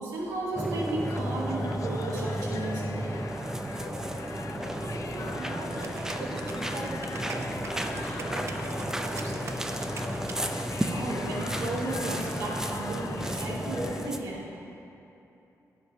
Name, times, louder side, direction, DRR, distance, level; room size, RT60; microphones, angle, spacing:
voice 1, 0.0-3.1 10.9-14.5, right 2 dB, 90° right, -5 dB, 2.2 m, -34 dB
sound 1, 0.5-14.2, right 1 dB, 10° right, 0.6 m, -33 dB
sound 2, 1.0-14.1, left 6 dB, 60° left, 0.5 m, -42 dB
voice 2, 5.1-8.6 8.9-9.4, right 3 dB, 65° right, 1 dB, 1.2 m, -41 dB
sound 3, 5.8-11.1, right 4 dB, 50° right, 0.8 m, -43 dB
9.3 x 7.5 x 5.3 m, 2.9 s
cardioid pair, 95°, 6 cm